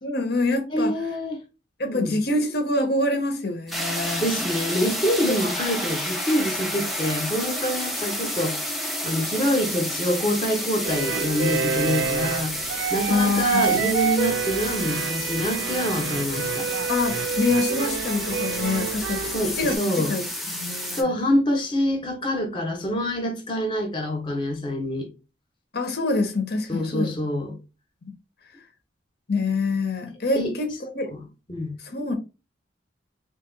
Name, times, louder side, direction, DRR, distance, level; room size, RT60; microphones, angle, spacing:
voice 1, 0.0-0.9 1.8-4.3 13.1-13.8 16.9-19.3 19.6-19.8 20.1-21.1 25.7-27.1 28.0-28.1 29.3-31.1 31.8-32.2, left 2 dB, 60° left, 0.8 m, -25 dB
voice 2, 0.7-1.4 1.8-2.2 4.2-8.6 9.0-12.6 12.9-16.7 19.2-20.2 21.0-25.1 26.7-27.6 30.3-30.5 31.1-31.2 31.5-31.8, equal, 25° left, 0.8 m, -26 dB
sound 1, 3.7-21.0, equal, ahead, 0.7 m, -30 dB
sound 2, 10.8-19.8, right 6 dB, 85° right, 0.3 m, -28 dB
2.8 x 2.7 x 3.8 m
head